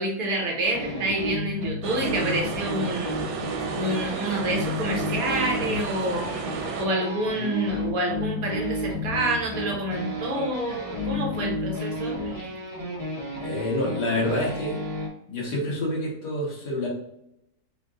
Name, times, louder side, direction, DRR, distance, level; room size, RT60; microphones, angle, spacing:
voice 1, 0.0-3.4 3.7-12.5, right 1 dB, 60° right, 1 dB, 1.5 m, -28 dB
sound 1, 0.6-15.1, left 1 dB, 15° right, 1.0 m, -32 dB
sound 2, 1.8-6.9, right 4 dB, 90° right, 1.3 m, -32 dB
voice 2, 13.4-14.8 15.3-16.9, left 1 dB, 85° left, -3 dB, 2.2 m, -27 dB
5.1 x 2.7 x 3.8 m, 0.77 s
omnidirectional pair, 1.7 m